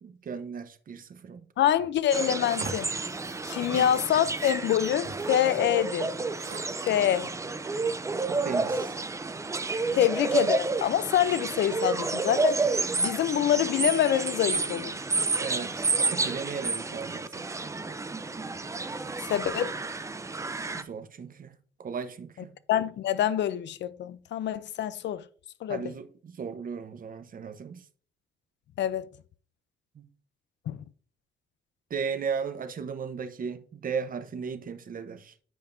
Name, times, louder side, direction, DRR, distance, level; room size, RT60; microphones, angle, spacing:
voice 1, 0.0-1.4 3.7-3.9 8.3-9.0 9.9-10.1 15.4-17.5 19.1-19.2 20.8-21.5 21.8-22.5 25.7-27.9 29.9-30.1 31.9-35.3, right 6 dB, 45° right, 0.8 m, -36 dB
voice 2, 1.6-2.9 3.5-6.1 6.9-7.3 9.9-12.7 13.0-14.9 19.3-19.7 22.7-25.2 25.6-25.8 28.8-29.1 30.7-30.8, left 11 dB, 65° left, 0.5 m, -26 dB
sound 1, 2.1-20.8, right 3 dB, 15° right, 0.5 m, -30 dB
sound 2, 2.5-5.3 5.6-5.8 6.2-7.5, right 4 dB, 80° right, 1.8 m, -44 dB
9.3 x 5.2 x 2.6 m
cardioid pair, 90°, 20 cm